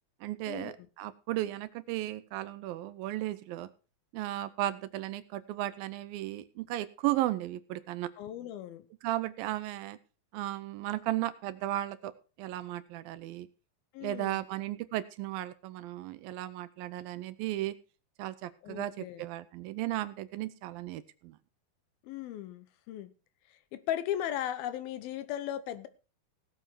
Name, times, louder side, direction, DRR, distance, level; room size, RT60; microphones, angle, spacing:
voice 1, 0.2-3.7 4.1-8.1 9.0-10.0 10.3-12.1 12.4-13.5 14.0-17.8 18.2-21.4, right 15 dB, 80° right, 2.4 m, -35 dB
voice 2, 8.2-8.8 13.9-14.4 18.6-19.2 22.0-23.1 23.7-25.9, left 11 dB, 80° left, 2.7 m, -37 dB
17.0 x 7.8 x 4.5 m
omnidirectional pair, 4.3 m